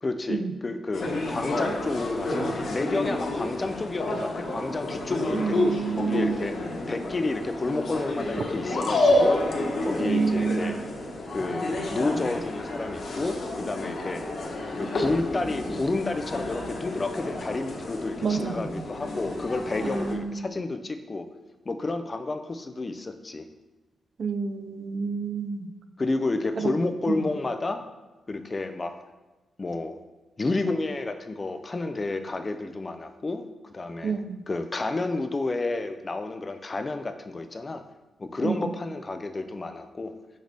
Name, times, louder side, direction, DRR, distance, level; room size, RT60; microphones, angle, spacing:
voice 1, 0.0-6.6 6.9-9.4 9.8-10.7 11.3-14.2 14.8-21.3 21.7-23.5 26.0-27.8 28.3-29.0 29.6-30.0 30.4-34.2 34.5-37.8 38.2-40.1, left 2 dB, 20° left, 8 dB, 0.4 m, -30 dB
sound 1, 0.9-20.1, left 1 dB, 50° left, 1.2 m, -29 dB
voice 2, 5.3-6.5 10.0-10.8 18.2-18.9 19.8-20.5 24.2-25.7 26.6-26.8 27.1-27.2 34.0-34.4 38.4-38.7, right 5 dB, 40° right, 9 dB, 0.4 m, -29 dB
6.5 x 6.4 x 3.4 m, 1.2 s
wide cardioid pair, 180°, 0 cm